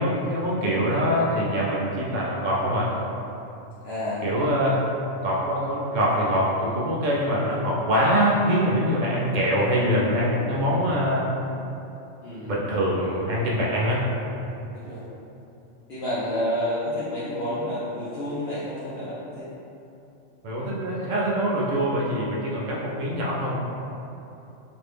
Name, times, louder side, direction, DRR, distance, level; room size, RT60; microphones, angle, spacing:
voice 1, 0.0-2.9 4.2-4.8 5.2-11.2 12.5-14.0 20.4-23.5, equal, 55° right, -5 dB, 0.5 m, -24 dB
voice 2, 3.8-4.2 12.2-12.5 14.7-15.0 15.9-19.5, left 1 dB, 60° left, -10 dB, 0.8 m, -29 dB
2.9 x 2.6 x 3.3 m, 2.8 s
omnidirectional pair, 1.3 m